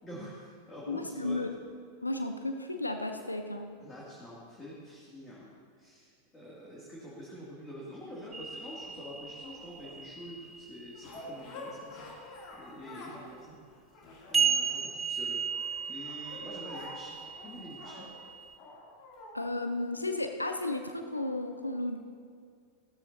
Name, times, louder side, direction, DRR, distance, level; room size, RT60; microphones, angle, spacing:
voice 1, 0.0-1.4 3.8-13.6 14.3-15.4 15.9-17.2 17.4-18.1, equal, 15° left, -6 dB, 2.5 m, -46 dB
voice 2, 0.9-1.5 2.0-3.7 19.3-22.0, left 2 dB, 85° left, 6 dB, 0.7 m, -33 dB
sound 1, 8.3-11.5 14.3-18.6, right 6 dB, 15° right, 0.6 m, -35 dB
sound 2, 8.7-10.0 10.9-13.3 13.6-15.1 15.5-19.4 20.1-20.2, left 2 dB, 40° left, 2.7 m, -48 dB
16.5 x 13.5 x 2.8 m, 2.2 s
figure-of-eight pair, 90°, 0 cm